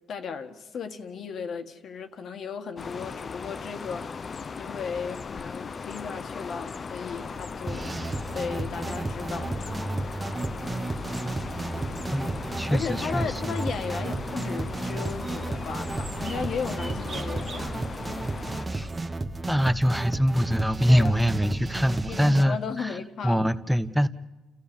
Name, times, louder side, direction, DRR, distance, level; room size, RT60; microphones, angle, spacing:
voice 1, 0.1-8.1 8.3-10.2 12.7-17.8 20.9-21.1 22.1-23.5, left 6 dB, 65° left, 1.8 m, -35 dB
sound 1, 2.8-18.7, left 5 dB, 40° left, 0.6 m, -38 dB
sound 2, 7.3-19.1, right 4 dB, 45° right, 1.8 m, -44 dB
sound 3, 7.7-22.4, right 2 dB, 25° right, 1.2 m, -33 dB
voice 2, 12.1-13.3 18.7-18.9 19.5-22.9 23.2-24.1, equal, ahead, 1.0 m, -24 dB
30.0 x 14.5 x 7.2 m
cardioid pair, 90°, 0 cm